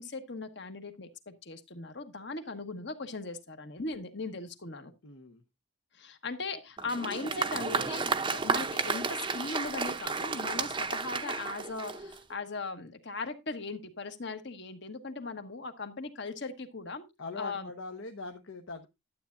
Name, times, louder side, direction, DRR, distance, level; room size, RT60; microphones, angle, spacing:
voice 1, 0.0-4.9 5.9-17.1 17.4-17.7, left 3 dB, 55° left, 1.3 m, -39 dB
voice 2, 5.0-5.4 17.2-18.9, left 3 dB, 75° left, 1.0 m, -41 dB
Applause, 6.8-12.3, right 4 dB, 25° right, 0.6 m, -32 dB
12.0 x 8.4 x 2.6 m
head